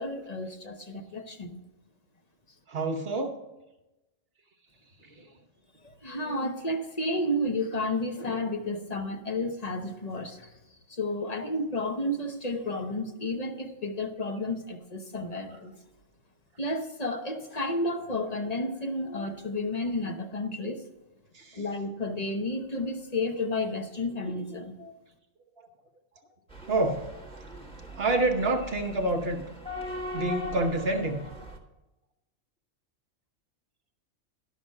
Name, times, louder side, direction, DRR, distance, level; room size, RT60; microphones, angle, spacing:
voice 1, 0.0-1.6 5.8-10.6 10.9-15.7 16.6-20.8 21.5-25.0, left 1 dB, 35° left, 5 dB, 0.9 m, -32 dB
voice 2, 2.7-3.4 5.0-5.3 21.3-21.6 26.7-27.5 27.9-29.4 29.8-31.2, right 2 dB, 50° right, 4 dB, 1.1 m, -28 dB
sound 1, 26.5-31.6, left 1 dB, 5° left, 1.2 m, -40 dB
12.0 x 5.9 x 6.4 m, 1.0 s
omnidirectional pair, 1.4 m